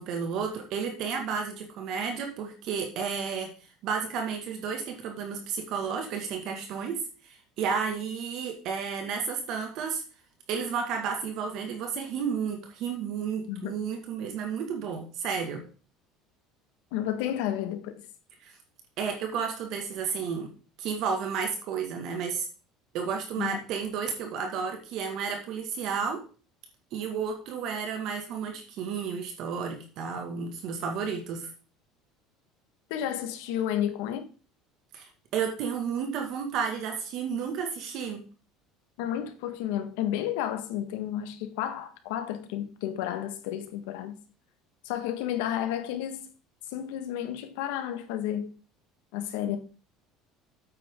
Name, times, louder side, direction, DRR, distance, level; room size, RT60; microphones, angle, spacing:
voice 1, 0.0-10.0 10.5-15.6 18.4-18.5 19.0-20.5 20.8-22.5 22.9-26.2 26.9-31.5 34.9-38.3, right 6 dB, 60° right, 1.9 m, -32 dB
voice 2, 16.9-18.0 23.4-23.6 32.9-34.3 39.0-44.1 44.8-46.3 46.7-48.5 49.1-49.6, left 11 dB, 85° left, 1.6 m, -31 dB
8.9 x 8.3 x 3.8 m
cardioid pair, 140°, 0 cm